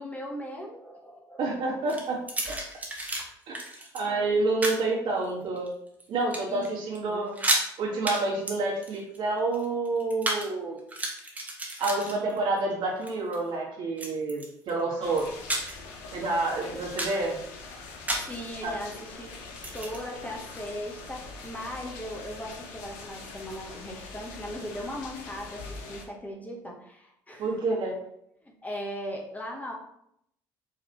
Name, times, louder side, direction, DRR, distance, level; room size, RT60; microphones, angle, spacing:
voice 1, 0.0-1.7 4.0-4.3 6.5-6.7 7.0-7.3 7.9-8.1 18.1-19.3 19.7-27.5 28.4-29.7, equal, 15° left, 0 dB, 1.1 m, -39 dB
voice 2, 1.4-2.2 2.5-2.6 3.5-3.6 3.9-5.7 6.1-7.4 7.8-10.8 11.8-15.3 16.1-17.4 18.6-18.8 27.4-28.0, right 3 dB, 55° right, -3 dB, 1.8 m, -28 dB
sound 1, 1.9-3.2 3.5-4.0 4.6-4.8 5.5-6.0 6.3-6.7 6.9-7.0 7.3-7.7 8.1-8.2 8.5-10.5 10.8-12.6 13.0-13.4 14.0-14.7 15.2-15.9 16.3-16.4 16.8-17.2 18.1-18.4 19.5-20.0, right 1 dB, 15° right, 1.3 m, -32 dB
sound 2, 15.0-26.0, left 3 dB, 80° left, 0.9 m, -43 dB
4.9 x 3.2 x 3.0 m, 0.74 s
hypercardioid pair, 70°, 10 cm